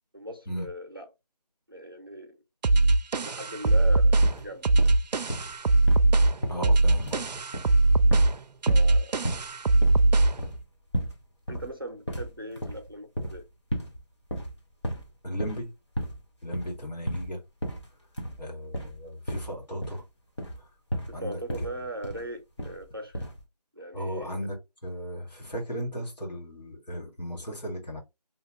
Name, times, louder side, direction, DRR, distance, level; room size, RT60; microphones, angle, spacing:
voice 1, 0.1-1.1 1.7-2.4 3.2-4.8 8.7-9.2 11.5-13.5 21.1-23.3 23.7-24.4, right 1 dB, 35° right, 0.6 m, -39 dB
sound 1, 2.6-10.4, right 2 dB, 90° right, 0.4 m, -21 dB
sound 2, 3.7-3.9 4.2-4.5 4.8-6.1 6.4-7.2 7.5-8.4 8.7-8.9 9.2-9.5 9.8-11.2 11.5-11.7 12.1-13.4 13.7-14.0 14.2-15.1 15.4-15.7 15.9-16.2 16.5-16.8 17.0-17.3 17.6-17.9 18.2-18.4 18.7-19.0 19.3-20.0 20.4-20.6 20.9-21.2 21.5-21.7 22.0-22.3 22.6-22.8 23.1-23.4, equal, 45° left, 1.1 m, -33 dB
voice 2, 6.5-7.4 15.2-15.7 16.4-17.4 18.4-20.0 21.1-21.8 23.9-28.0, equal, 85° left, 1.7 m, -36 dB
2.8 x 2.8 x 2.9 m
figure-of-eight pair, 180°, 21 cm